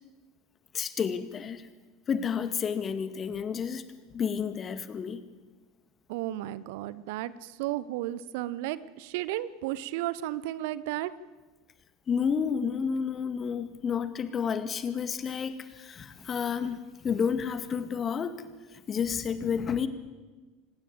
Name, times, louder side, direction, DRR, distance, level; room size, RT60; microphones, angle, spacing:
voice 1, 0.7-1.7 2.1-3.8 4.1-5.2 12.1-19.9, left 6 dB, 30° left, 11 dB, 1.9 m, -30 dB
voice 2, 6.1-11.1, right 14 dB, 60° right, 18 dB, 0.8 m, -33 dB
26.0 x 19.0 x 7.3 m, 1.3 s
figure-of-eight pair, 75°, 0 cm